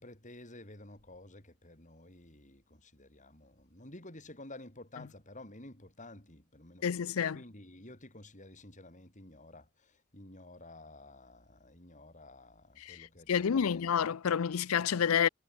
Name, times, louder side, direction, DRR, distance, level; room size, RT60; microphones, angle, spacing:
voice 1, 0.0-14.1, left 2 dB, 35° left, 6.9 m, -52 dB
voice 2, 6.8-7.4 12.8-13.0 13.3-15.3, left 7 dB, 80° left, 0.5 m, -29 dB
head